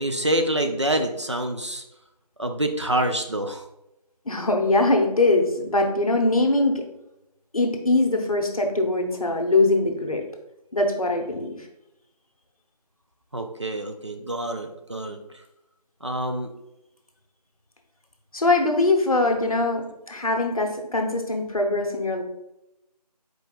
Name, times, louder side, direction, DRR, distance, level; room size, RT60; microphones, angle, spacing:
voice 1, 0.0-1.8 2.4-3.7 13.3-15.2 16.0-16.5, right 1 dB, 45° right, 5 dB, 0.4 m, -26 dB
voice 2, 4.3-6.8 7.5-10.2 10.7-11.5 18.3-22.2, left 2 dB, 60° left, 3 dB, 0.8 m, -22 dB
4.9 x 4.5 x 2.4 m, 0.89 s
figure-of-eight pair, 170°, 21 cm